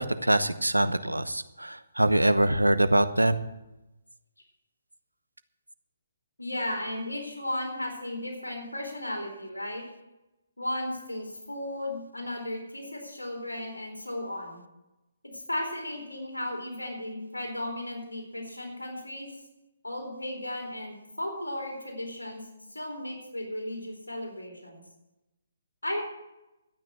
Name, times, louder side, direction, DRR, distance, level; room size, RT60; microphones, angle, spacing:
voice 1, 0.0-3.4, right 1 dB, 90° right, 13 dB, 0.9 m, -24 dB
voice 2, 6.4-9.9 10.6-14.6 15.3-19.3 19.8-22.4 22.7-24.8 25.8-26.0, left 1 dB, 85° left, 2 dB, 4.1 m, -35 dB
12.5 x 9.1 x 7.8 m, 0.97 s
figure-of-eight pair, 135°, 0 cm